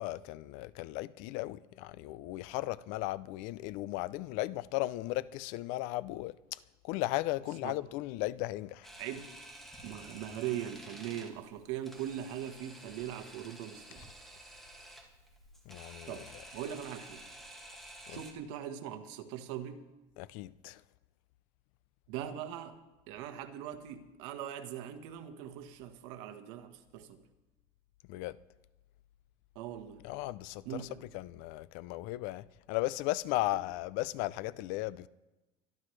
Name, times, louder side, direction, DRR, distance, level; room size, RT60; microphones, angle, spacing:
voice 1, 0.0-6.6 6.8-8.9 15.7-16.2 18.1-18.2 20.2-20.8 28.1-28.4 30.0-30.9 31.1-35.1, left 17 dB, 70° left, 0.5 m, -36 dB
Camera, 8.8-18.3, right 1 dB, ahead, 2.1 m, -51 dB
voice 2, 9.0-9.3 9.8-14.1 16.1-16.3 16.5-17.3 18.1-19.9 22.1-22.8 23.1-27.2 29.5-30.0 30.6-31.0, right 10 dB, 80° right, 1.4 m, -41 dB
24.0 x 12.0 x 3.3 m
cardioid pair, 145°, 14 cm